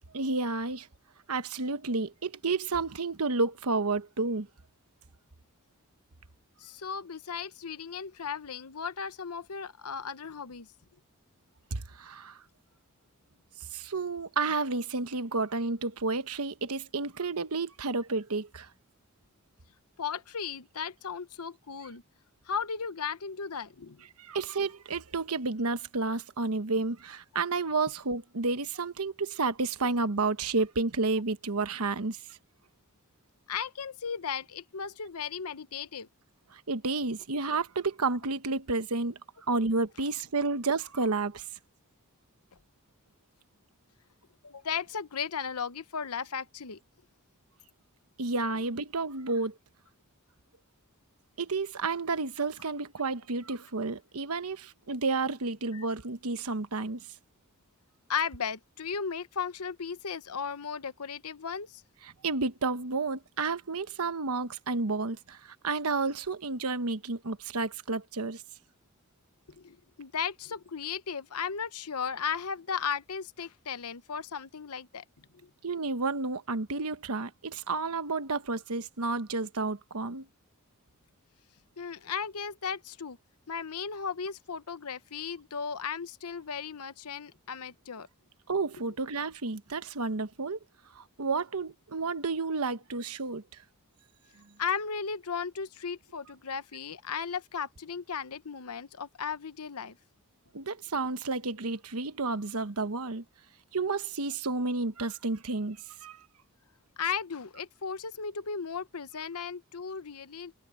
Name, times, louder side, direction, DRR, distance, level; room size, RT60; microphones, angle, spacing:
voice 1, 0.1-0.9 1.3-4.5 11.7-12.4 13.7-18.7 24.2-32.2 36.5-39.2 39.5-41.5 48.2-49.5 51.4-57.0 62.2-68.4 75.6-80.3 88.5-90.6 90.9-93.4 100.5-103.2 103.7-106.2, right 3 dB, 85° right, 1.1 m, -31 dB
voice 2, 6.6-10.7 20.0-22.0 22.4-24.0 33.5-36.1 44.4-46.8 55.7-55.8 58.1-61.8 69.5-75.0 75.4-75.5 81.8-83.2 83.5-88.1 94.6-100.0 107.0-110.5, left 6 dB, 90° left, 0.9 m, -36 dB
head